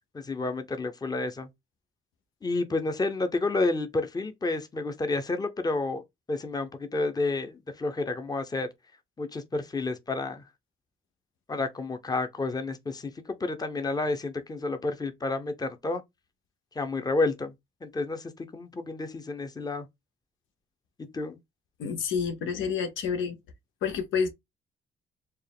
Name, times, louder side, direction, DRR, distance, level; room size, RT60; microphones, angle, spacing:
voice 1, 0.1-1.5 2.4-6.0 6.3-8.7 9.2-10.4 11.5-16.0 16.8-17.5 17.8-19.9 21.1-21.4, left 3 dB, 20° left, 0.8 m, -30 dB
voice 2, 21.8-23.4 23.8-24.3, left 6 dB, 80° left, 0.8 m, -29 dB
4.4 x 2.4 x 3.5 m
cardioid pair, 90°, 20 cm